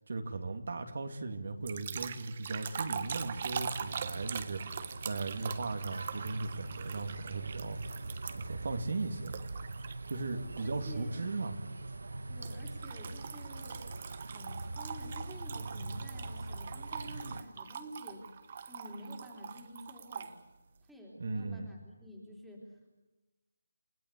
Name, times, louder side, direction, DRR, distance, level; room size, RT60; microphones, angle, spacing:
voice 1, 0.1-8.0 8.3-9.4 10.1-11.6 21.2-21.7, right 3 dB, 55° right, 6 dB, 2.6 m, -37 dB
sound 1, 1.7-8.6 9.3-10.1 10.6-10.9 12.4-20.3, right 6 dB, 30° right, 1.4 m, -42 dB
sound 2, 3.1-17.4, right 2 dB, 75° right, 1.4 m, -43 dB
voice 2, 10.6-11.3 12.3-13.8 14.3-18.2 18.7-20.3 20.8-22.9, equal, ahead, -3 dB, 3.5 m, -49 dB
29.5 x 17.0 x 8.4 m, 1.1 s
figure-of-eight pair, 170°, 0 cm